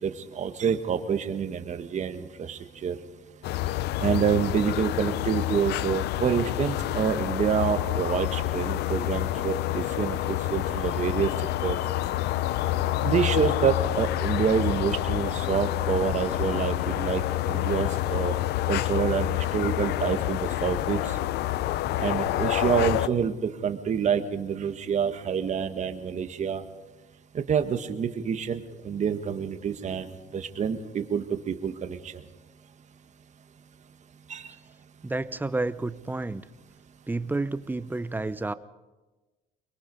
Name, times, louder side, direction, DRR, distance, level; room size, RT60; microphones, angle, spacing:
voice 1, 0.0-3.0 4.0-11.8 13.0-18.3 18.7-21.2 22.0-26.6 27.3-32.1 34.3-34.5, right 7 dB, 45° right, 8 dB, 1.6 m, -27 dB
sound 1, 3.4-23.1, left 14 dB, 80° left, 0.6 m, -28 dB
voice 2, 35.0-36.4 37.1-38.5, right 2 dB, 10° right, 14 dB, 0.8 m, -30 dB
23.5 x 22.0 x 5.5 m, 1.2 s
cardioid pair, 110°, 17 cm